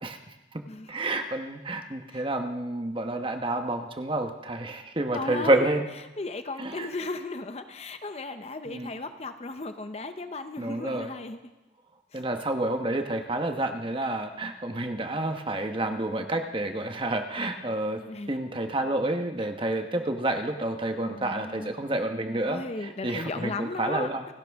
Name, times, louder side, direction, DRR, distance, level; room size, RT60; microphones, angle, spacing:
voice 1, 0.0-0.6 0.9-5.9 6.6-6.9 8.6-8.9 10.6-11.2 12.1-18.0 18.3-24.3, right 1 dB, 30° right, 5 dB, 1.1 m, -29 dB
voice 2, 5.1-5.6 6.2-11.4 12.1-12.2 18.1-18.3 21.0-21.7 22.5-24.1, left 3 dB, 35° left, 9 dB, 0.7 m, -35 dB
29.0 x 11.5 x 3.6 m, 1.1 s
head